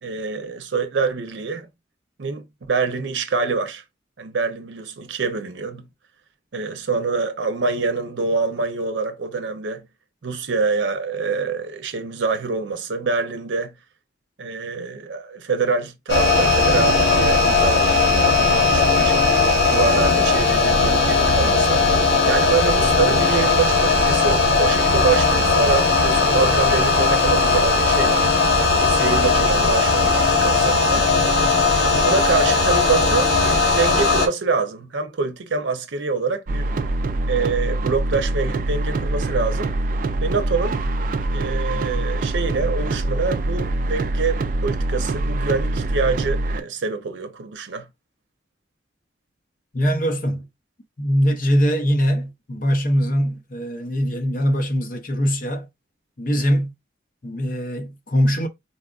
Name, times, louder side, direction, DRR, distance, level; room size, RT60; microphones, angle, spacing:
voice 1, 0.0-1.7 2.2-3.8 4.2-5.9 6.5-9.8 10.2-13.7 14.4-18.0 18.3-19.2 19.7-21.9 22.3-28.3 28.8-31.1 31.9-36.7 37.3-39.8 40.2-40.8 41.3-47.9, right 4 dB, 90° right, 0.6 m, -25 dB
sound 1, 16.1-34.3, left 3 dB, 80° left, 1.2 m, -18 dB
sound 2, 36.5-46.6, right 2 dB, 45° right, 0.3 m, -24 dB
voice 2, 49.7-50.5 51.0-55.7 56.2-56.7 57.2-58.5, equal, 45° left, 0.7 m, -22 dB
4.0 x 2.4 x 2.3 m
head